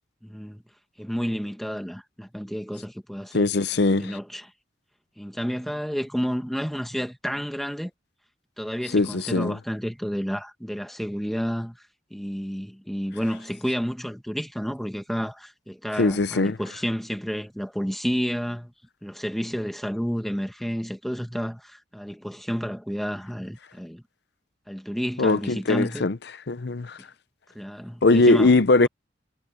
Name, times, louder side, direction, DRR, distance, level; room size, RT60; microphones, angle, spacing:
voice 1, 0.2-0.6 1.0-3.5 3.9-4.5 5.2-7.9 8.6-11.8 12.1-18.7 19.0-24.0 24.7-26.1 27.5-28.5 28.8-28.9, equal, ahead, 1.9 m, -30 dB
voice 2, 3.3-4.2 8.9-9.6 16.0-16.6 25.2-26.2 26.5-27.0 28.0-28.9, left 3 dB, 65° left, 0.7 m, -20 dB
head